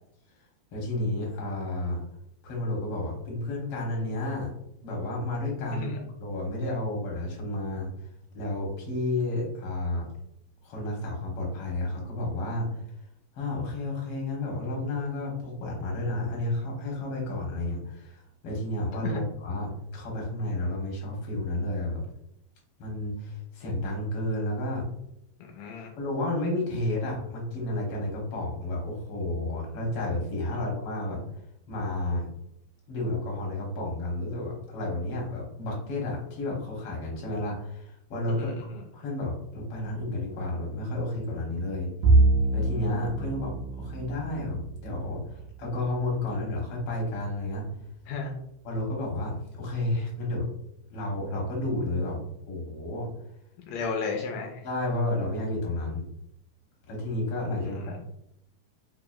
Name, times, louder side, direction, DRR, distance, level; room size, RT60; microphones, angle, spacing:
voice 1, 0.7-2.0 2.4-4.5 4.8-5.9 6.2-7.9 8.3-10.1 10.6-12.7 13.3-22.0 22.8-24.8 26.0-31.2 31.7-32.3 32.9-38.5 38.9-41.9 42.5-47.7 48.6-50.5 50.9-53.1 54.6-56.0 56.9-57.8, left 2 dB, 60° left, -2 dB, 1.7 m, -31 dB
voice 2, 25.4-25.9 30.5-30.6 38.3-38.8 48.1-48.3 53.7-54.6 57.6-58.0, left 4 dB, 85° left, 2 dB, 1.5 m, -34 dB
Bowed string instrument, 42.0-46.6, right 2 dB, 90° right, 1.4 m, -26 dB
4.7 x 2.9 x 2.2 m, 0.77 s
omnidirectional pair, 3.4 m